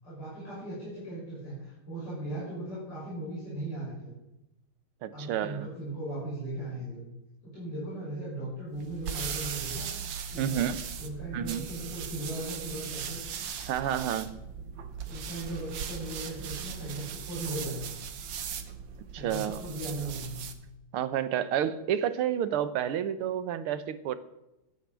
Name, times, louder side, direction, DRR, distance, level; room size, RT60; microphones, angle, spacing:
voice 1, 0.0-4.1 5.1-7.0 7.4-9.9 10.3-10.7 11.0-13.2 15.1-17.9 19.1-20.4, right 2 dB, 50° left, -9 dB, 6.9 m, -38 dB
voice 2, 5.0-5.7 10.4-10.8 11.3-11.7 13.7-14.4 19.1-19.6 20.9-24.2, right 10 dB, 90° right, 13 dB, 1.8 m, -30 dB
sound 1, 8.7-20.6, right 7 dB, 65° right, 1.7 m, -38 dB
14.0 x 9.4 x 6.3 m, 0.92 s
omnidirectional pair, 2.3 m